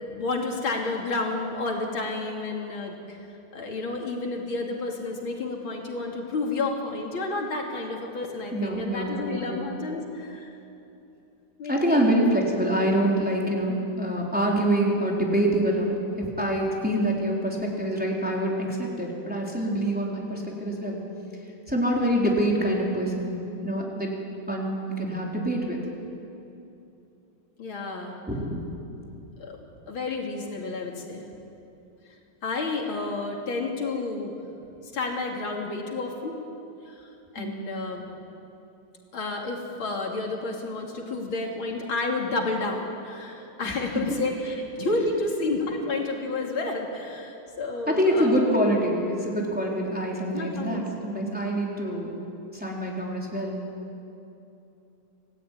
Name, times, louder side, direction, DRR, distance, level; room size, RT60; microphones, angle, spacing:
voice 1, 0.0-3.2 3.5-10.5 11.6-12.3 14.6-14.7 27.6-28.2 29.4-29.6 29.9-31.3 32.4-34.3 34.9-36.4 36.9-37.1 37.3-38.1 39.1-48.5 50.3-50.8, left 3 dB, 80° left, 0 dB, 3.5 m, -30 dB
voice 2, 8.5-9.5 11.7-21.0 21.7-23.3 23.6-24.1 24.5-25.8 28.3-28.7 37.4-37.5 47.9-52.2 52.5-53.6, right 1 dB, 5° right, -3 dB, 4.1 m, -25 dB
26.5 x 18.5 x 9.5 m, 2.8 s
omnidirectional pair, 2.2 m